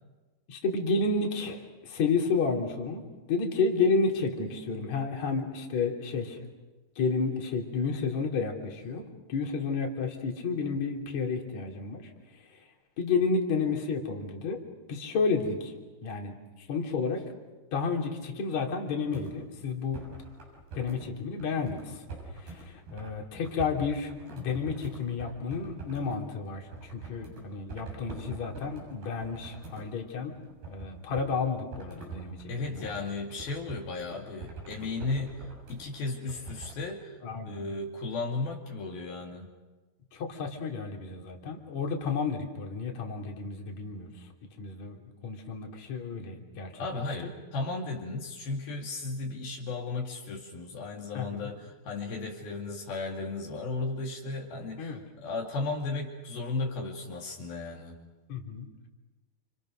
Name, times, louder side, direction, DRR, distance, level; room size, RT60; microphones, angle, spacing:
voice 1, 0.5-3.0 3.3-6.4 7.0-9.0 9.3-12.0 12.5-12.6 13.0-14.6 14.9-15.7 16.0-17.2 17.7-20.0 20.7-22.0 22.4-30.3 30.7-32.9 37.2-37.7 40.1-44.3 44.6-45.0 45.2-46.8 47.2-47.3 51.1-51.5 54.8-55.0 58.3-58.7, left 4 dB, 45° left, 1 dB, 4.3 m, -31 dB
sound 1, 19.1-19.3 19.9-21.1 21.4-26.2 26.5-27.4 27.7-29.9 30.3-31.3 31.7-36.8, right 3 dB, 80° right, 9.1 m, -44 dB
voice 2, 32.5-37.2 37.5-39.5 46.8-58.0, left 3 dB, 70° left, 0 dB, 4.2 m, -35 dB
29.5 x 29.5 x 6.6 m, 1.2 s
omnidirectional pair, 4.5 m